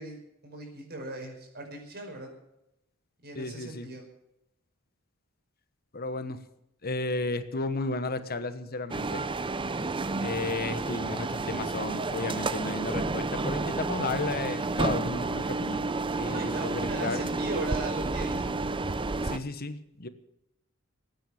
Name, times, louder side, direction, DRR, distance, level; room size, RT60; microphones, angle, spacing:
voice 1, 0.0-2.3 3.2-4.1 16.3-18.6, right 2 dB, 50° right, 2 dB, 5.3 m, -38 dB
voice 2, 3.3-3.9 5.9-6.4 6.8-9.3 10.2-15.9 16.1-17.2 19.2-20.1, left 3 dB, 45° left, 11 dB, 1.3 m, -33 dB
sound 1, 8.9-19.4, right 3 dB, 25° right, 0.6 m, -31 dB
19.5 x 9.3 x 7.3 m, 0.83 s
head